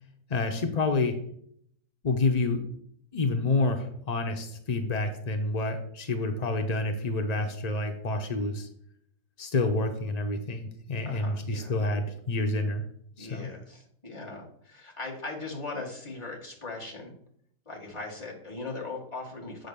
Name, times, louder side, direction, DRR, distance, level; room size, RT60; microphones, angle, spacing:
voice 1, 0.3-1.2 2.0-2.7 3.1-8.7 9.4-12.8 13.2-13.5, left 3 dB, 70° left, 5 dB, 0.3 m, -28 dB
voice 2, 11.0-11.8 13.2-17.1 17.6-19.7, left 3 dB, 20° left, -3 dB, 1.6 m, -39 dB
7.9 x 3.9 x 6.7 m, 0.69 s
omnidirectional pair, 1.8 m